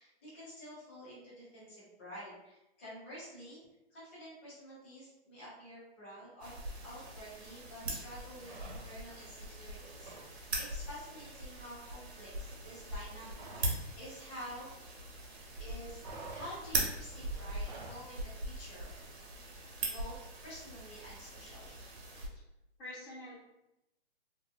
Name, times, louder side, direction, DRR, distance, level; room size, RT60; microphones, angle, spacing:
voice 1, 0.0-3.6 3.9-6.5 6.8-14.7 15.6-16.0 16.3-18.9 19.8-20.2 20.4-21.9, equal, 10° left, -8 dB, 0.3 m, -49 dB
sound 1, 6.4-22.3, right 2 dB, 70° right, 0.9 m, -41 dB
sound 2, 8.4-9.2 9.5-10.3 10.6-10.8 11.1-13.9 14.1-15.2 15.5-18.1, right 2 dB, 45° right, 0.7 m, -50 dB
voice 2, 11.9-12.3 22.8-23.4, left 1 dB, 50° left, -11 dB, 1.3 m, -48 dB
2.7 x 2.4 x 2.3 m, 0.91 s
hypercardioid pair, 150°, 32 cm